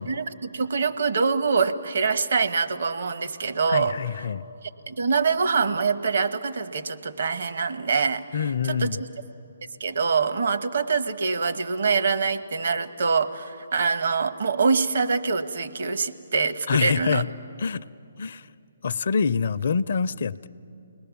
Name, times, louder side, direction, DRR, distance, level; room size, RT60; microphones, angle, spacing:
voice 1, 0.0-4.0 4.6-9.1 9.8-17.2, right 5 dB, 65° right, 9 dB, 1.1 m, -25 dB
voice 2, 3.7-4.4 8.3-9.0 16.7-17.3 17.6-17.8 18.2-18.4 18.8-20.5, left 6 dB, 60° left, 15 dB, 0.5 m, -26 dB
29.5 x 20.0 x 7.1 m, 2.7 s
figure-of-eight pair, 145°, 0 cm